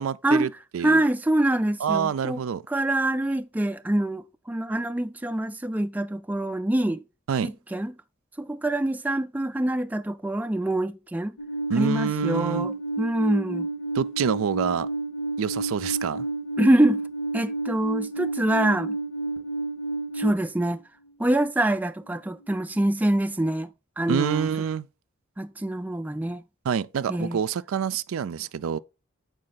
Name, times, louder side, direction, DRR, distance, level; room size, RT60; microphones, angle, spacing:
voice 1, 0.0-1.0 1.8-2.6 7.3-7.5 11.7-12.7 13.9-14.9 15.4-16.3 24.1-24.9 26.7-28.8, right 7 dB, 75° right, 0.4 m, -27 dB
voice 2, 0.8-2.4 2.7-7.0 7.4-7.9 8.4-11.4 11.8-13.7 16.6-17.0 17.3-19.0 20.1-20.8 21.2-23.7 24.0-24.5 25.4-26.4 27.1-27.4, right 1 dB, 10° right, 0.3 m, -25 dB
Alarm, 11.4-20.3, right 2 dB, 90° left, 1.8 m, -30 dB
7.6 x 5.1 x 4.0 m
head